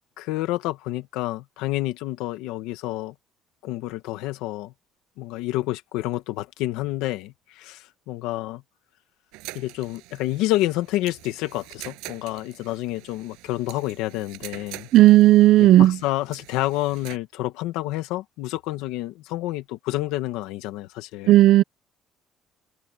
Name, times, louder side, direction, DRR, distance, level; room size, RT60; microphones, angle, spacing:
voice 1, 0.2-3.1 3.6-4.7 5.2-8.6 9.5-14.9 15.6-21.4, left 16 dB, 80° left, 1.8 m, -29 dB
sound 1, 9.3-17.2, right 22 dB, 90° right, 7.2 m, -44 dB
voice 2, 14.9-16.0 21.3-21.6, right 15 dB, 45° right, 0.7 m, -13 dB
cardioid pair, 180°, 0 cm